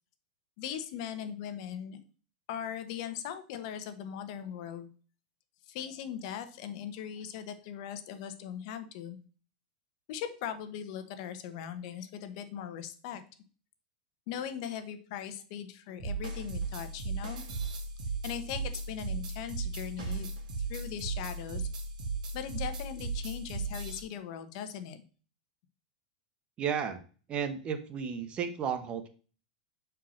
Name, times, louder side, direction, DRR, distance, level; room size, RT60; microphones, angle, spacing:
voice 1, 0.6-2.0 2.5-4.9 5.7-9.2 10.1-13.2 14.3-17.4 18.2-20.3 20.7-21.7 22.3-25.0, left 9 dB, 55° left, 10 dB, 1.1 m, -39 dB
sound 1, 16.0-24.0, right 4 dB, 80° right, 2.1 m, -36 dB
voice 2, 26.6-27.0 27.3-29.1, right 7 dB, 25° right, 9 dB, 1.0 m, -33 dB
5.6 x 4.6 x 6.3 m, 0.38 s
supercardioid pair, 145°, 4 cm